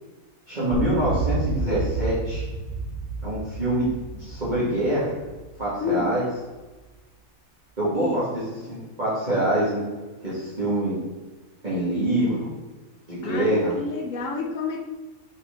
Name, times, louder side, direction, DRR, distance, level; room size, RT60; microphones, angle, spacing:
voice 1, 0.5-2.4 3.2-3.9 4.1-5.1 5.6-6.2 7.8-8.4 8.7-9.8 10.2-10.9 11.6-12.4 13.1-13.7, right 1 dB, 30° right, -11 dB, 2.4 m, -25 dB
sound 1, 0.7-6.1, right 3 dB, 70° right, 1.8 m, -30 dB
voice 2, 5.8-6.2 7.9-8.2 13.2-14.8, left 5 dB, 65° left, 3 dB, 1.2 m, -29 dB
6.8 x 5.8 x 3.9 m, 1.2 s
omnidirectional pair, 1.5 m